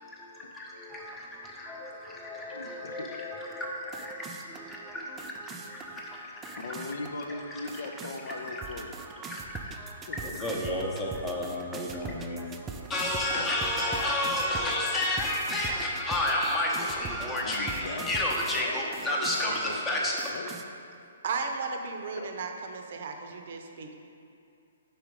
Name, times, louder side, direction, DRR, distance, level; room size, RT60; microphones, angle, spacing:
voice 1, 0.0-6.6 9.3-9.7 10.2-12.4 12.9-20.2, left 1 dB, 15° left, -2 dB, 0.8 m, -31 dB
sound 1, 0.9-18.6 18.9-19.7 20.2-20.6, right 4 dB, 15° right, 0.3 m, -43 dB
voice 2, 2.5-3.1 6.6-9.0 10.1-10.2 17.3-20.5 22.2-22.4, left 3 dB, 70° left, 5 dB, 0.5 m, -40 dB
voice 3, 21.2-23.9, right 4 dB, 60° right, 4 dB, 0.6 m, -35 dB
5.0 x 4.4 x 4.8 m, 2.6 s
hypercardioid pair, 150°, 0 cm